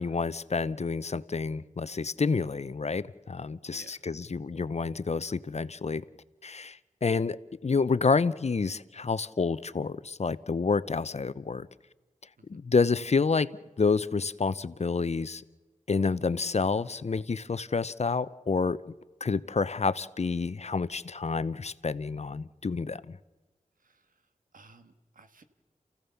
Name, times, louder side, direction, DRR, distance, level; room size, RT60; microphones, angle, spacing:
voice 1, 0.0-6.0 6.4-11.7 12.5-13.5 13.8-15.4 15.9-18.9 19.2-23.2, left 4 dB, 55° left, 17 dB, 0.7 m, -29 dB
voice 2, 3.7-4.0 23.8-24.1 24.5-25.4, right 3 dB, 85° right, 9 dB, 1.5 m, -55 dB
28.5 x 16.0 x 7.0 m, 1.2 s
wide cardioid pair, 55°, 14 cm